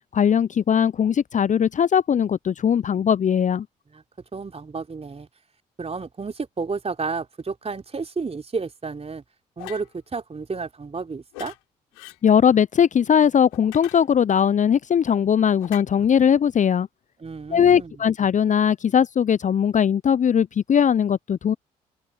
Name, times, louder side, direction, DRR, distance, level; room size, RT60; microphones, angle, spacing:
voice 1, 0.1-3.7 12.2-16.9 17.5-21.5, left 8 dB, 40° left, 0.8 m, -19 dB
voice 2, 4.3-5.3 5.8-9.2 9.6-11.5 17.2-18.0, right 4 dB, 30° right, 3.7 m, -31 dB
sound 1, 9.6-9.9 11.3-11.6 11.9-12.2 13.5-14.4 15.6-15.8, left 38 dB, 75° left, 5.2 m, -41 dB
open air
figure-of-eight pair, 40°, 20 cm